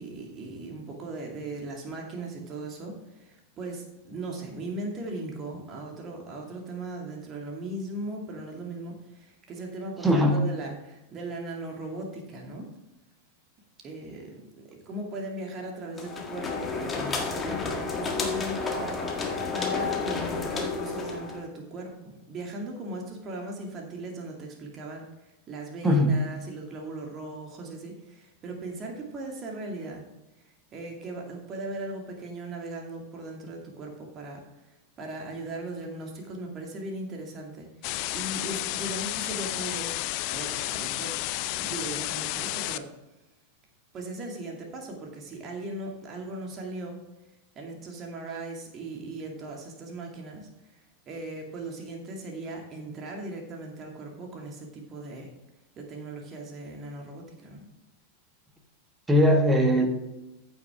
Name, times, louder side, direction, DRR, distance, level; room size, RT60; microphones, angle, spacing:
voice 1, 0.0-12.7 13.8-18.6 19.5-25.1 25.5-30.0 30.7-34.4 35.0-40.0 40.3-41.2 41.5-42.9 43.9-47.0 47.5-55.3 55.8-57.6, right 2 dB, 30° right, 1 dB, 2.3 m, -38 dB
voice 2, 10.0-10.4 25.8-26.1 59.1-59.9, equal, 10° right, 4 dB, 1.5 m, -20 dB
sound 1, 16.0-21.5, left 4 dB, 20° left, 1.6 m, -31 dB
sound 2, 37.8-42.8, left 17 dB, 45° left, 0.4 m, -31 dB
14.5 x 6.2 x 3.6 m, 0.95 s
figure-of-eight pair, 90°, 0 cm